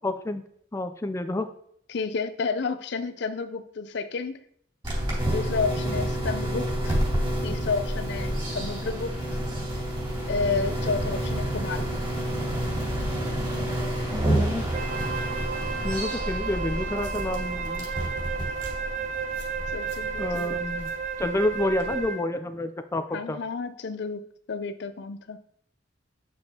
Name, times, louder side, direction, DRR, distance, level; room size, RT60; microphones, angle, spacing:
voice 1, 0.0-0.4 0.7-1.5 14.3-14.7 15.8-17.9 20.2-20.9 21.2-23.4, left 1 dB, 15° left, 8 dB, 0.4 m, -29 dB
voice 2, 1.9-4.4 5.3-7.0 7.4-9.2 10.3-11.9 19.7-20.6 23.1-25.4, left 4 dB, 65° left, 11 dB, 0.5 m, -31 dB
sound 1, 4.8-22.1, right 1 dB, 25° right, 2.7 m, -29 dB
Wind instrument woodwind instrument, 14.7-22.3, right 6 dB, 45° right, 0.7 m, -32 dB
8.6 x 6.2 x 2.9 m, 0.65 s
head